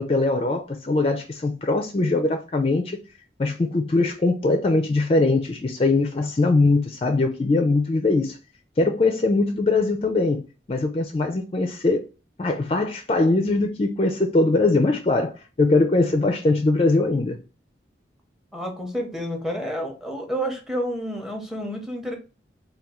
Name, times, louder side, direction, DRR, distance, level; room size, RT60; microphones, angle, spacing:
voice 1, 0.0-3.0 3.4-8.4 8.8-10.4 10.7-12.0 12.4-17.4, left 2 dB, 30° left, 0.4 m, -21 dB
voice 2, 18.5-22.1, equal, ahead, 0.7 m, -29 dB
3.5 x 2.3 x 4.2 m
head